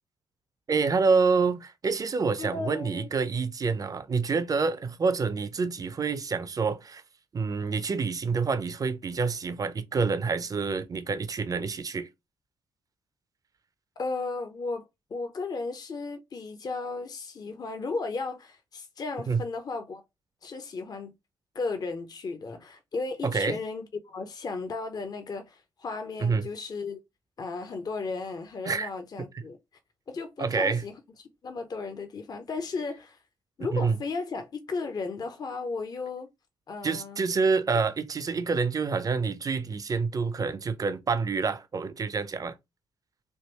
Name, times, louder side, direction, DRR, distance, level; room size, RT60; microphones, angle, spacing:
voice 1, 0.7-7.0 7.3-12.1 19.3-19.4 23.2-23.6 26.2-26.5 28.6-28.9 30.4-30.8 33.7-34.0 36.8-42.5, right 4 dB, 35° right, 0.6 m, -27 dB
voice 2, 2.4-3.1 14.0-14.9 15.1-20.0 20.4-21.2 21.5-27.0 27.4-29.6 30.1-33.2 33.6-36.3 36.7-37.2, left 4 dB, 40° left, 0.6 m, -35 dB
3.5 x 2.5 x 2.9 m
hypercardioid pair, 40°, 10 cm